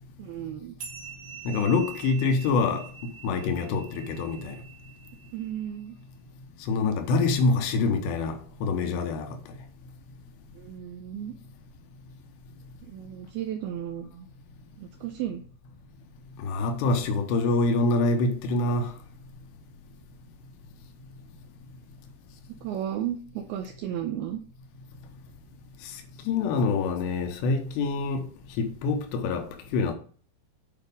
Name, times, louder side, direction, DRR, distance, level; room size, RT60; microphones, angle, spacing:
voice 1, 0.2-0.8 1.7-1.9 5.3-6.0 10.5-11.4 12.8-14.3 14.8-15.4 22.6-24.4, right 10 dB, 75° right, 2.4 m, -34 dB
sound 1, 0.8-5.7, right 8 dB, 55° right, 2.4 m, -45 dB
voice 2, 1.5-4.6 6.7-9.4 16.4-18.9 25.9-28.3 28.6-30.0, left 3 dB, 85° left, 3.2 m, -26 dB
9.0 x 4.7 x 5.3 m
omnidirectional pair, 5.0 m